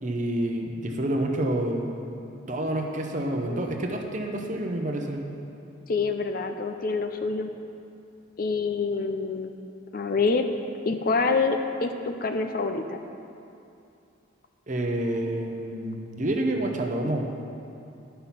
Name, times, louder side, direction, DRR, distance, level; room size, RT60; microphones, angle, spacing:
voice 1, 0.0-2.0 2.5-5.3 14.7-17.3, right 1 dB, 40° right, 2 dB, 0.8 m, -28 dB
voice 2, 5.9-7.5 8.4-9.5 9.9-10.5 10.8-13.0, left 4 dB, 45° left, 6 dB, 0.5 m, -26 dB
11.5 x 5.6 x 5.8 m, 2.7 s
head